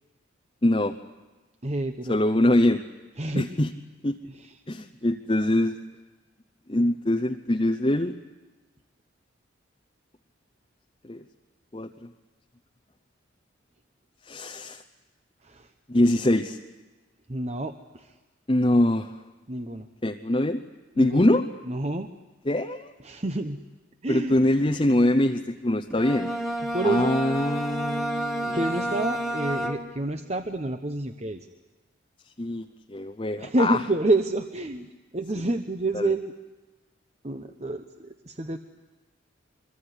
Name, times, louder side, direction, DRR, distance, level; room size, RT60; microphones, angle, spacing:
voice 1, 0.6-0.9 2.1-2.8 3.4-3.7 4.0-4.1 4.7-5.8 6.7-8.2 11.1-11.2 11.7-11.9 14.3-14.8 15.9-16.6 18.5-19.1 20.0-20.6 21.0-21.5 22.5-22.9 24.1-26.3 26.8-28.6 32.4-33.8 35.9-36.1, left 1 dB, 25° left, 4 dB, 0.8 m, -23 dB
voice 2, 1.6-2.2 3.2-3.5 4.2-4.5 15.4-15.7 17.3-18.1 19.5-19.9 21.0-21.2 21.7-22.1 23.0-23.6 24.0-24.5 26.6-27.1 28.5-31.5 33.4-34.9 35.1-36.3 37.2-38.6, right 2 dB, 30° right, 7 dB, 1.0 m, -28 dB
Bowed string instrument, 25.9-30.2, right 1 dB, ahead, 2.1 m, -30 dB
25.5 x 24.0 x 9.8 m, 1.2 s
head